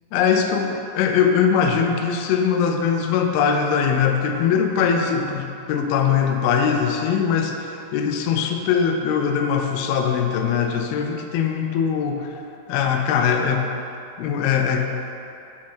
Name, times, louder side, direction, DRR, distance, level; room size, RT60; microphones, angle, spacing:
voice 1, 0.1-12.4 12.7-13.7 14.2-14.9, left 7 dB, 85° left, 4 dB, 2.2 m, -21 dB
7.0 x 4.6 x 4.5 m, 2.8 s
omnidirectional pair, 4.8 m